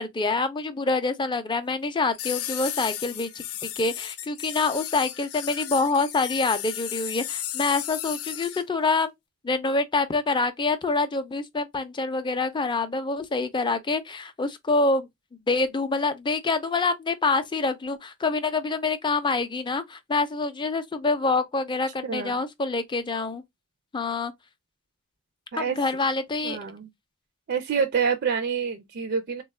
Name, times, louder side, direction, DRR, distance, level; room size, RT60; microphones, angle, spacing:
voice 1, 0.0-9.1 9.4-15.1 15.5-23.4 23.9-24.3 25.6-26.6, left 3 dB, 20° left, 0.4 m, -26 dB
sound 1, 2.1-8.6, left 11 dB, 90° left, 0.5 m, -34 dB
voice 2, 26.4-26.9 27.5-29.4, right 6 dB, 50° right, 0.4 m, -27 dB
3.4 x 2.3 x 3.2 m
head